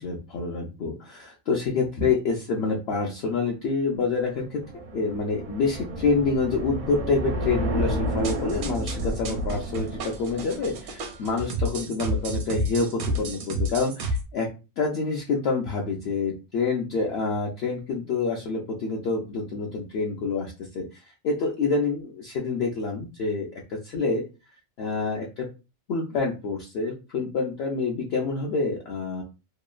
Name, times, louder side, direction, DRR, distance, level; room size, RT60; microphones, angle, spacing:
voice 1, 0.0-4.6 4.9-14.5 14.8-24.2 24.8-25.5 25.9-29.2, left 4 dB, 65° left, -1 dB, 0.7 m, -27 dB
sound 1, 4.0-11.4, equal, 55° right, 0.5 m, -32 dB
sound 2, 8.2-14.2, right 1 dB, 75° right, 0.9 m, -30 dB
3.0 x 2.1 x 2.3 m, 0.30 s
omnidirectional pair, 1.3 m